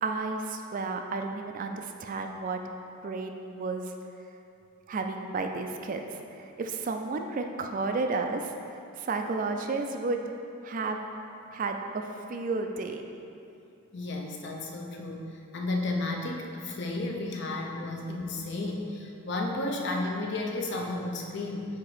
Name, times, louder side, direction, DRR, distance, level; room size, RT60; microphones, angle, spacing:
voice 1, 0.0-2.6 3.0-4.0 4.9-6.0 6.4-10.2 10.6-11.0 11.5-13.0, right 3 dB, 40° right, 4 dB, 0.3 m, -32 dB
voice 2, 13.9-15.3 15.5-21.7, left 2 dB, 55° left, 1 dB, 0.6 m, -32 dB
8.0 x 2.9 x 4.8 m, 2.7 s
head